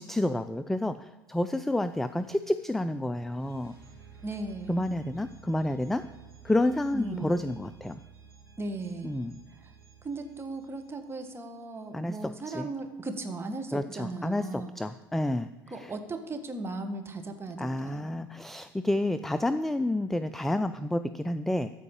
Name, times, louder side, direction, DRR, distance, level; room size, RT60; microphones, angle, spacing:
voice 1, 0.0-3.7 4.7-6.0 6.4-8.0 9.0-9.4 11.9-12.7 13.7-15.5 15.8-15.9 17.6-21.7, left 1 dB, ahead, 12 dB, 0.3 m, -29 dB
sound 1, 1.3-12.1, right 6 dB, 80° right, 2.6 m, -54 dB
voice 2, 4.2-4.8 6.9-7.4 8.6-9.2 9.6-9.7 10.0-14.7 15.7-18.2, right 2 dB, 20° right, 6 dB, 1.5 m, -37 dB
13.5 x 4.8 x 7.2 m, 1.2 s
figure-of-eight pair, 70°, 12 cm